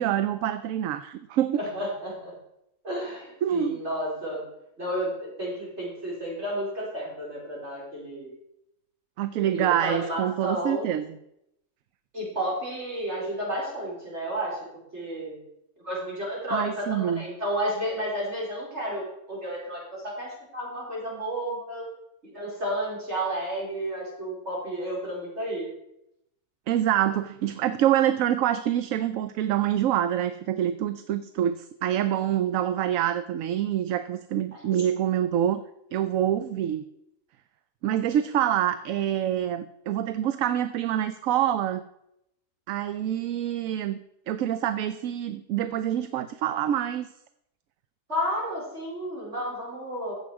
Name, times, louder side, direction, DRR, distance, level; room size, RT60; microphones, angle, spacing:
voice 1, 0.0-1.6 3.4-3.8 9.2-11.1 16.5-17.2 26.7-35.6 35.9-36.8 37.8-41.8 42.7-44.0 44.3-47.1, right 11 dB, 70° right, 12 dB, 0.9 m, -26 dB
voice 2, 1.6-2.3 2.8-4.4 4.8-8.4 9.4-10.9 12.1-14.6 14.9-15.4 15.8-21.9 22.2-25.6 34.7-34.8 48.1-50.1, equal, 50° right, -4 dB, 4.8 m, -32 dB
14.5 x 7.8 x 4.7 m, 0.82 s
omnidirectional pair, 1.5 m